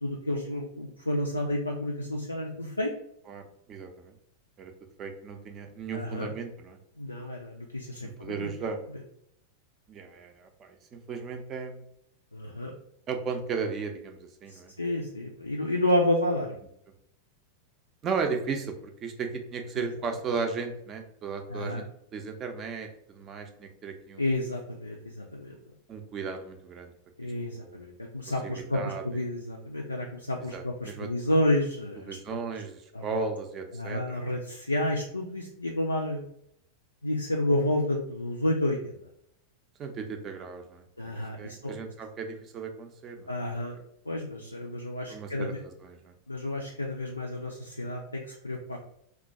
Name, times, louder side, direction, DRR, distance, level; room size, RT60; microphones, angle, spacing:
voice 1, 0.0-2.9 5.9-6.3 7.0-8.5 12.3-12.7 14.5-16.5 19.7-19.9 21.5-21.8 24.2-25.6 27.2-32.2 32.9-33.2 33.7-36.2 37.0-38.9 41.0-41.7 43.3-43.8 44.1-45.6 46.3-48.9, left 1 dB, 80° left, 0 dB, 0.3 m, -30 dB
voice 2, 3.3-4.1 4.6-4.7 5.0-6.8 8.0-8.8 9.9-11.8 13.1-14.7 18.0-21.9 22.1-24.2 25.9-26.9 27.2-27.8 28.4-29.3 30.5-31.1 32.1-34.4 39.8-43.4 45.1-46.1, right 5 dB, 30° right, 4 dB, 0.5 m, -36 dB
2.4 x 2.2 x 4.0 m, 0.72 s
figure-of-eight pair, 90°, 0 cm